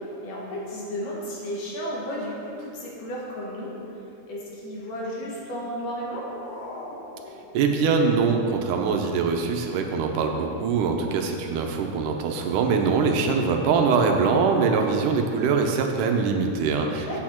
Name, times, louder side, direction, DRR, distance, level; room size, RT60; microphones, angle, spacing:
voice 1, 0.2-3.7 4.3-6.2 13.0-13.4 16.9-17.2, equal, 85° left, -4 dB, 3.3 m, -33 dB
sound 1, 5.7-8.6, left 2 dB, 70° left, 2.3 m, -43 dB
voice 2, 7.5-17.2, right 5 dB, 90° right, 3 dB, 2.3 m, -23 dB
8.6 x 8.2 x 4.4 m, 2.6 s
omnidirectional pair, 3.6 m